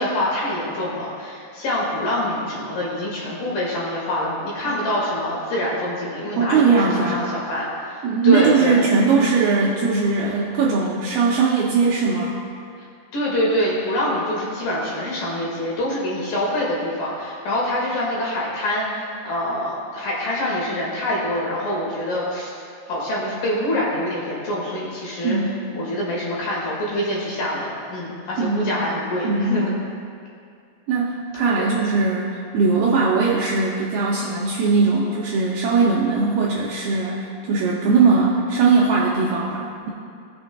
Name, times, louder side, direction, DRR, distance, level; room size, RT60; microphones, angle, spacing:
voice 1, 0.0-8.9 13.1-22.6 22.9-25.4 25.7-29.8 31.6-31.7, left 1 dB, 60° left, -5 dB, 3.2 m, -25 dB
voice 2, 6.4-7.2 8.0-12.4 25.2-25.6 28.4-28.7 29.2-29.7 30.9-39.9, right 4 dB, 80° right, -4 dB, 2.3 m, -20 dB
18.5 x 7.2 x 2.2 m, 2.4 s
omnidirectional pair, 5.2 m